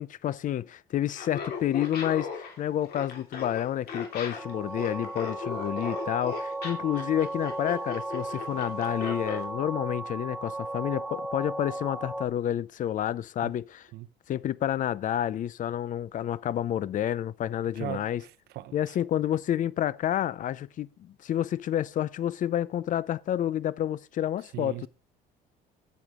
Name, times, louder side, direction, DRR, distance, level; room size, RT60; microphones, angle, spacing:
voice 1, 0.0-13.9 14.3-18.2 18.7-24.9, left 11 dB, 50° left, 0.5 m, -29 dB
Laughter, 1.1-9.4, left 6 dB, 65° left, 2.8 m, -37 dB
sound 1, 4.1-12.3, right 2 dB, ahead, 2.5 m, -36 dB
voice 2, 17.8-19.0 24.5-24.9, right 15 dB, 75° right, 0.7 m, -39 dB
9.1 x 8.1 x 3.7 m
cardioid pair, 110°, 17 cm